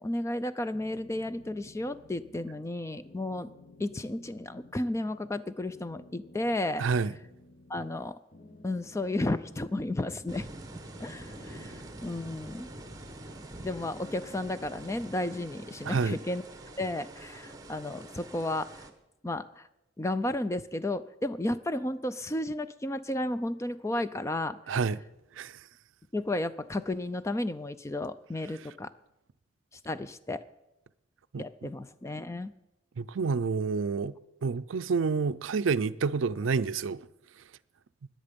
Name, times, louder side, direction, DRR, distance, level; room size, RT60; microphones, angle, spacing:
voice 1, 0.0-3.5 3.8-6.8 7.7-8.2 8.6-10.5 11.0-12.7 13.6-16.4 16.8-18.9 19.2-19.7 20.0-24.6 26.1-28.9 29.9-30.4 31.4-32.5, left 1 dB, 15° left, 0.4 m, -33 dB
sound 1, 0.7-2.8 3.0-5.4 5.7-8.0 8.3-10.7 11.0-13.3 13.6-15.9, left 1 dB, 40° left, 0.9 m, -54 dB
voice 2, 6.8-7.1 15.8-16.2 24.7-25.0 25.4-25.6 31.3-31.7 33.0-34.1 34.4-37.0, right 5 dB, 75° right, 0.4 m, -28 dB
Rain and some sparse distant thunders, 10.3-18.9, right 2 dB, 20° right, 1.0 m, -46 dB
20.5 x 7.6 x 5.2 m
head